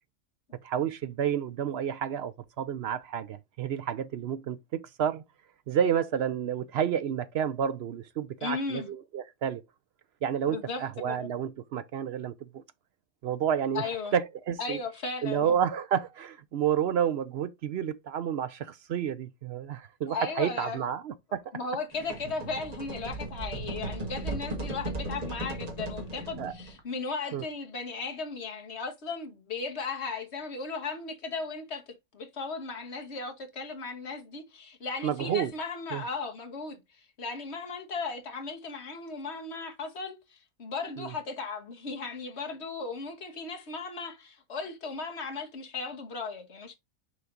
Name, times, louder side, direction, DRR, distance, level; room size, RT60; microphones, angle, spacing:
voice 1, 0.5-5.2 5.7-9.6 10.2-12.6 13.2-14.8 15.2-21.4 23.6-23.7 26.4-26.5 27.3-27.4 35.0-35.5 35.9-36.0 41.0-41.1, right 9 dB, 65° right, 0.6 m, -30 dB
voice 2, 8.4-8.9 10.5-11.3 13.7-14.1 14.6-15.6 20.1-20.8 21.5-31.8 32.1-46.7, left 4 dB, 50° left, 1.6 m, -36 dB
sound 1, 21.9-26.8, right 2 dB, 30° right, 1.6 m, -37 dB
6.3 x 4.6 x 3.7 m
omnidirectional pair, 1.5 m